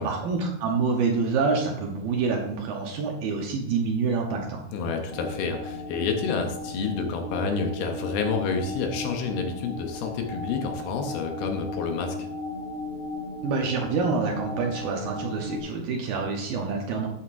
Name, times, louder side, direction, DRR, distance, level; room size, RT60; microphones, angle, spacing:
voice 1, 0.0-4.6 13.4-17.1, right 4 dB, 70° right, 1 dB, 2.4 m, -27 dB
voice 2, 4.7-12.2, left 5 dB, 75° left, 4 dB, 2.6 m, -29 dB
sound 1, 5.1-15.6, left 2 dB, 55° left, 4.1 m, -36 dB
11.5 x 9.2 x 2.6 m, 0.80 s
omnidirectional pair, 4.9 m